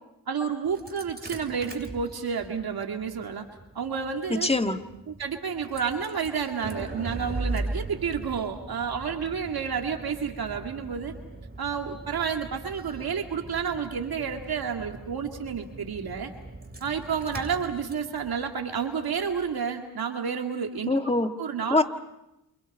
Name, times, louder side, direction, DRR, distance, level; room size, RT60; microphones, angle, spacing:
voice 1, 0.3-3.4 3.7-4.5 5.1-11.1 11.6-16.3 16.8-20.9 21.4-21.8, right 6 dB, 70° right, 3 dB, 2.2 m, -30 dB
Engine starting, 0.6-19.6, right 2 dB, 25° right, 7.2 m, -40 dB
voice 2, 4.3-4.8 20.9-21.3 21.7-21.8, left 2 dB, 15° left, 7 dB, 1.8 m, -23 dB
29.0 x 28.5 x 5.5 m, 0.89 s
cardioid pair, 55°, 38 cm